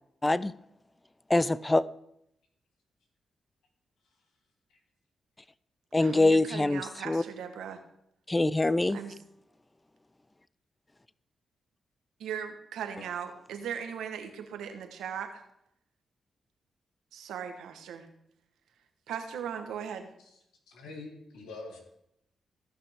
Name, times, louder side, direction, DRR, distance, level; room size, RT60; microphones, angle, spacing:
voice 1, 1.3-1.8 5.9-7.2 8.3-9.0, left 2 dB, 20° left, 19 dB, 0.4 m, -24 dB
voice 2, 6.0-7.8 8.9-9.2 12.2-15.4 17.1-18.1 19.1-20.1, right 8 dB, 85° right, 6 dB, 1.1 m, -38 dB
voice 3, 20.7-21.8, left 3 dB, 90° left, 2 dB, 1.9 m, -44 dB
16.5 x 5.9 x 3.5 m, 0.76 s
supercardioid pair, 50°, 0 cm